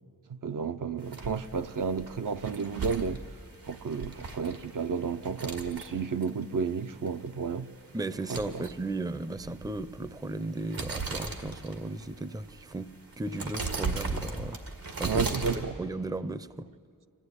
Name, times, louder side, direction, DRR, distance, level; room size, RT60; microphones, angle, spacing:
voice 1, 0.3-3.2 3.7-7.7 8.3-8.6 15.0-15.7, right 5 dB, 65° right, 0.7 m, -32 dB
sound 1, 1.0-15.6, right 3 dB, 85° right, 2.1 m, -38 dB
voice 2, 7.9-12.9 13.2-14.6 15.0-15.3 15.8-16.7, right 2 dB, 10° right, 0.6 m, -35 dB
25.5 x 15.5 x 9.8 m
wide cardioid pair, 80°, 34 cm